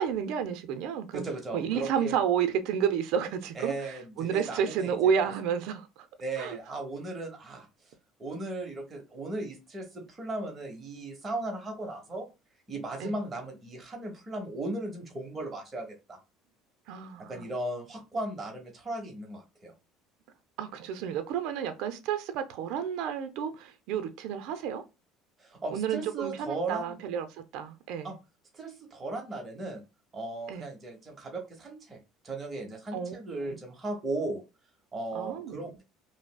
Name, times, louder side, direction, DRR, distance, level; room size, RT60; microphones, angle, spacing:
voice 1, 0.0-1.2 1.5-5.9 6.4-6.6 13.0-13.1 16.9-17.5 20.6-24.8 25.7-27.3 27.5-28.2 30.5-30.7 32.9-33.2 33.5-33.6 35.1-35.6, right 8 dB, 70° right, 0.5 m, -31 dB
voice 2, 1.1-2.1 3.5-5.1 6.2-7.7 8.2-12.3 12.7-16.2 17.2-19.7 25.4-26.9 28.0-28.2 28.5-29.8 30.1-32.0 32.2-34.4 34.9-35.8, right 2 dB, 25° right, 1.0 m, -36 dB
4.9 x 2.0 x 2.2 m
cardioid pair, 125°, 0 cm